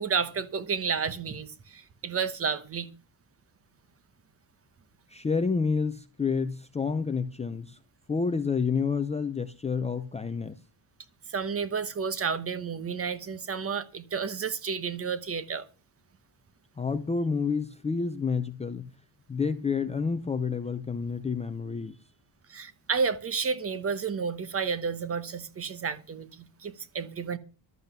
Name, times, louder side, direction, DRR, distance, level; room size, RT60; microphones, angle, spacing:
voice 1, 0.0-2.9 11.3-15.7 22.5-27.4, right 6 dB, 30° right, 1.1 m, -31 dB
voice 2, 5.1-7.8 8.1-10.6 16.8-18.9 19.3-22.0, left 5 dB, 15° left, 0.5 m, -29 dB
12.5 x 7.9 x 6.8 m
cardioid pair, 175°, 45 cm